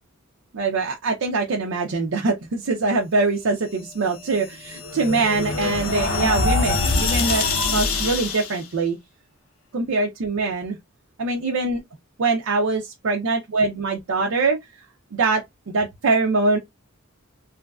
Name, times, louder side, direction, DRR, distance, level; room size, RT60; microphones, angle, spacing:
voice 1, 0.5-9.0 9.7-10.8 11.2-11.8 12.2-14.6 15.1-16.6, right 3 dB, 70° right, 0.5 m, -23 dB
sound 1, 4.1-8.6, left 3 dB, 70° left, 0.7 m, -24 dB
3.0 x 2.5 x 2.3 m
head